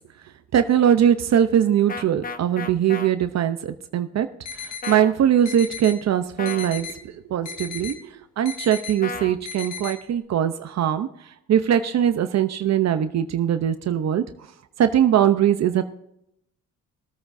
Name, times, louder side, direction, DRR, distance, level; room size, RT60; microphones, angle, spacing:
voice 1, 0.5-4.3 4.5-11.1 11.5-14.2 14.8-15.8, right 9 dB, 60° right, 9 dB, 0.8 m, -21 dB
sound 1, 1.9-3.1 4.8-5.1 6.4-6.7 9.0-9.4, left 4 dB, 30° left, 0.7 m, -33 dB
sound 2, 4.4-4.9 5.4-5.9 6.4-6.9 7.4-7.9 8.4-8.9 9.4-9.9, left 7 dB, 85° left, 2.3 m, -34 dB
21.0 x 8.8 x 2.7 m, 0.80 s
cardioid pair, 90°, 30 cm